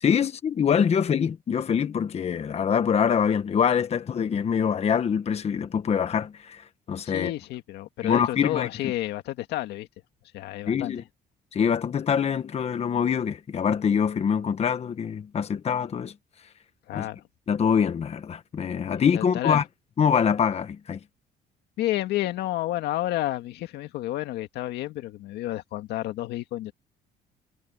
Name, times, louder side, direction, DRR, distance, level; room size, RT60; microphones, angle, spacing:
voice 1, 0.0-7.3 8.0-8.7 10.7-11.0 11.5-16.1 16.9-17.1 17.5-19.6 20.0-21.0, left 7 dB, 40° left, 1.2 m, -24 dB
voice 2, 7.0-9.9 10.3-10.9 16.9-17.2 18.9-19.6 21.8-26.7, left 15 dB, 80° left, 2.0 m, -30 dB
cardioid pair, 110°, 17 cm